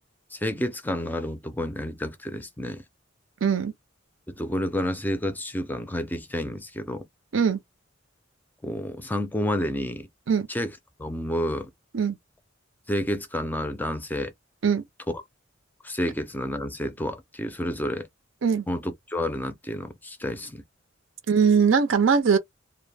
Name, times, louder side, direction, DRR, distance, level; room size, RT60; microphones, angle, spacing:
voice 1, 0.3-2.8 4.3-7.1 8.6-10.1 10.5-10.7 11.0-11.7 12.9-14.3 15.1-15.2 15.8-18.1 18.7-20.6, left 1 dB, 10° left, 0.4 m, -30 dB
voice 2, 3.4-3.7 7.3-7.6 10.3-10.5 11.9-12.1 14.6-14.8 18.4-18.6 21.3-22.4, right 6 dB, 75° right, 0.6 m, -21 dB
2.2 x 2.1 x 3.2 m
head